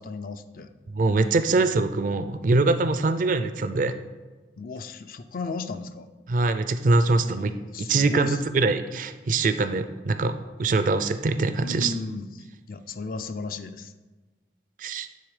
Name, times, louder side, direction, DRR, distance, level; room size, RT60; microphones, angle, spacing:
voice 1, 0.0-0.7 4.6-6.1 7.2-8.4 11.6-13.9, left 3 dB, 50° left, 9 dB, 0.4 m, -35 dB
voice 2, 0.9-4.0 6.3-7.5 7.9-11.9 14.8-15.1, right 3 dB, 45° right, 10 dB, 0.4 m, -23 dB
9.3 x 3.8 x 4.9 m, 1.2 s
head